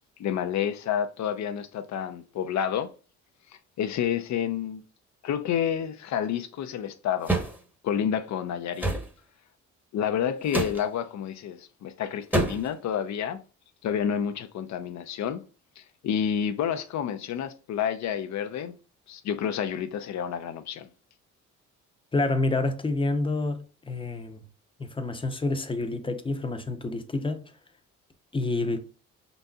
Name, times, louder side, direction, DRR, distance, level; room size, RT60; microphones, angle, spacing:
voice 1, 0.2-2.9 3.8-4.8 5.2-7.3 7.8-8.9 9.9-13.4 13.8-15.4 15.8-18.7 19.1-20.9, left 8 dB, 65° left, 0.6 m, -29 dB
sound 1, 7.3-7.6 8.8-9.1 10.5-10.8 12.3-12.7, right 2 dB, 5° right, 1.0 m, -26 dB
voice 2, 22.1-24.4 24.8-27.4 28.3-28.8, left 2 dB, 15° left, 0.7 m, -28 dB
5.3 x 4.0 x 2.3 m
cardioid pair, 90°, 30 cm